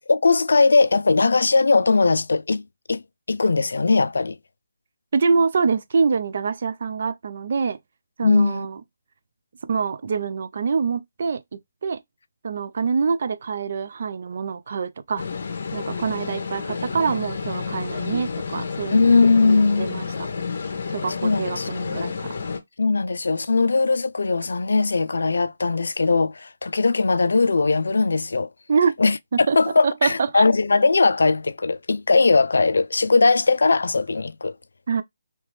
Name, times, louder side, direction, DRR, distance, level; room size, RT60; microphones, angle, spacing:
voice 1, 0.1-3.0 3.3-4.4 8.2-8.7 18.9-19.9 21.2-21.7 22.0-22.1 22.8-28.5 29.0-34.6, left 3 dB, 80° left, 0.3 m, -19 dB
voice 2, 5.1-7.8 8.2-8.8 9.7-11.4 11.8-12.0 12.4-15.2 15.7-19.2 19.8-20.3 20.9-22.4 28.7-28.9 29.5-29.6 29.8-30.4 34.9-35.0, right 5 dB, 50° right, 0.4 m, -25 dB
sound 1, 15.2-22.6, left 5 dB, 50° left, 0.8 m, -30 dB
3.0 x 3.0 x 3.1 m
hypercardioid pair, 170°, 0 cm